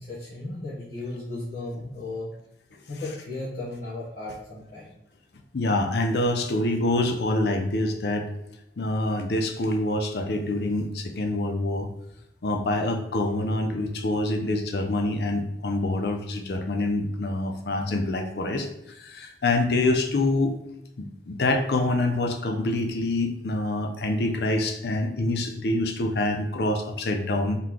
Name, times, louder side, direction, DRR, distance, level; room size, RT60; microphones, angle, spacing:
voice 1, 0.0-2.3 2.9-4.9, left 2 dB, 50° left, -10 dB, 1.1 m, -35 dB
voice 2, 5.5-8.3 8.8-11.9 12.4-18.7 19.0-20.5 21.0-27.6, left 2 dB, 65° left, 4 dB, 0.5 m, -26 dB
3.8 x 3.7 x 3.1 m, 0.82 s
head